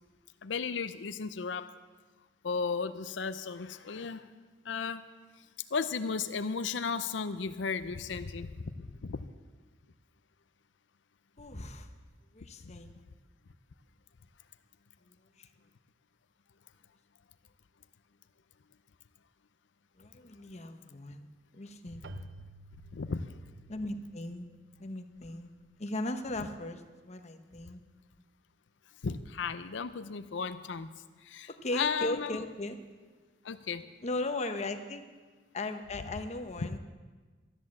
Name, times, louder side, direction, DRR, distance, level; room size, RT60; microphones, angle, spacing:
voice 1, 0.4-1.7 2.4-4.3 4.6-5.0 5.7-9.2 22.9-23.4 29.0-30.9 31.2-32.3 33.4-33.9, left 5 dB, 85° left, 11 dB, 0.6 m, -35 dB
voice 2, 11.4-11.9 12.3-12.9 15.0-15.5 20.0-21.3 21.5-22.3 23.7-24.4 24.8-25.5 25.8-27.8 31.6-32.8 34.0-35.0 35.5-36.8, left 2 dB, 40° left, 7 dB, 1.0 m, -37 dB
Keyboard (musical), 22.0-26.5, right 2 dB, 70° right, 0.6 m, -53 dB
13.0 x 11.0 x 7.4 m, 1.4 s
head